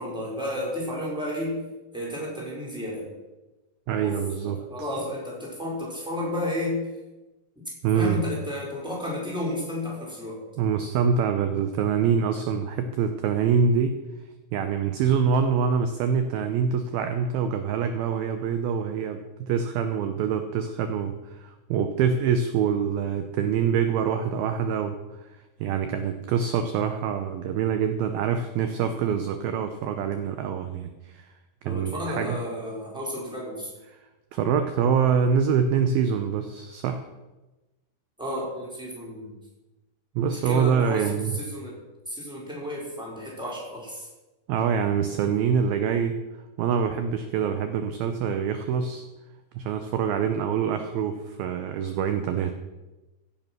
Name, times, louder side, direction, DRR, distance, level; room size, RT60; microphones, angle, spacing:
voice 1, 0.0-1.6 1.9-3.1 4.0-4.2 4.4-6.8 7.9-10.4 31.7-33.7 38.2-39.4 40.2-41.8 42.1-44.1, left 1 dB, ahead, -4 dB, 3.9 m, -32 dB
voice 2, 3.9-4.6 7.8-8.2 10.6-14.0 14.5-25.0 25.6-31.3 31.6-32.4 34.3-37.0 40.2-41.3 44.5-46.2 46.6-49.0 49.6-52.6, right 7 dB, 75° right, 8 dB, 2.4 m, -25 dB
16.0 x 9.2 x 6.0 m, 1.1 s
omnidirectional pair, 4.9 m